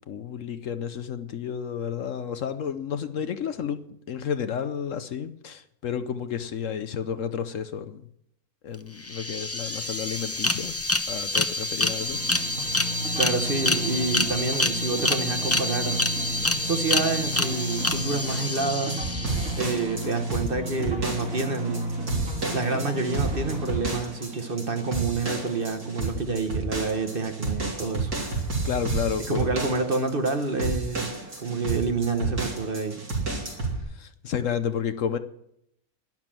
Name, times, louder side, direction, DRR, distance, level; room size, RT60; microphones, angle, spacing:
voice 1, 0.1-8.0 8.6-10.8 11.1-12.7 28.2-29.5 33.9-35.2, left 7 dB, 65° left, 11 dB, 1.0 m, -31 dB
sound 1, 8.7-8.8 9.0-19.8, left 2 dB, 20° left, 0.3 m, -27 dB
sound 2, 12.0-26.1, right 1 dB, 60° right, 2.8 m, -34 dB
voice 2, 13.1-16.0 16.6-19.2 19.6-21.9 22.5-28.1 29.3-33.0, right 3 dB, 40° right, 7 dB, 1.2 m, -28 dB
sound 3, 18.3-33.8, right 3 dB, 75° right, 3.9 m, -31 dB
12.0 x 11.0 x 7.5 m, 0.77 s
omnidirectional pair, 1.6 m